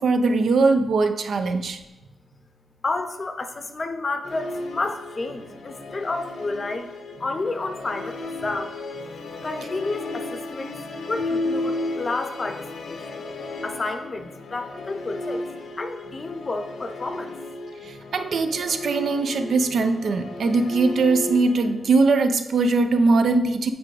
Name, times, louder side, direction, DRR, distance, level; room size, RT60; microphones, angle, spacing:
voice 1, 0.0-1.8 17.8-23.7, right 3 dB, 60° right, 7 dB, 0.6 m, -21 dB
voice 2, 2.8-6.9 7.2-8.8 9.4-10.8 11.1-13.2 13.6-15.5 15.8-17.4, left 3 dB, 30° left, 8 dB, 0.7 m, -30 dB
Musical instrument, 4.2-21.9, left 2 dB, 85° left, 1.1 m, -34 dB
8.1 x 4.9 x 4.9 m, 1.1 s
wide cardioid pair, 140°, 0 cm